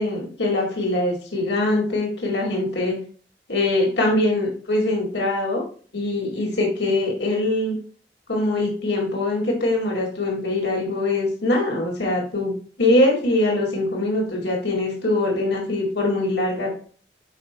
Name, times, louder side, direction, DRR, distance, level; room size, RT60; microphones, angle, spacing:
voice 1, 0.0-3.0 3.5-5.6 5.9-7.7 8.3-16.7, left 2 dB, 80° left, -1 dB, 2.1 m, -23 dB
9.6 x 5.0 x 2.2 m, 0.43 s
head